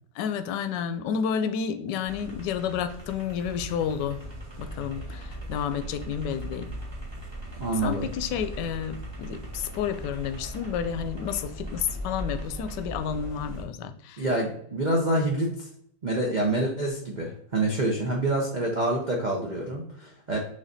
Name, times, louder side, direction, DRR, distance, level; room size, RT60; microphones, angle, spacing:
voice 1, 0.2-4.2 4.6-6.7 7.8-14.2, left 7 dB, 75° left, 10 dB, 1.1 m, -30 dB
sound 1, 2.0-13.6, right 1 dB, 15° right, 1.5 m, -39 dB
voice 2, 7.6-8.1 14.2-15.7 16.0-20.4, right 1 dB, 80° right, -1 dB, 0.4 m, -27 dB
6.4 x 3.1 x 2.6 m, 0.70 s
omnidirectional pair, 2.0 m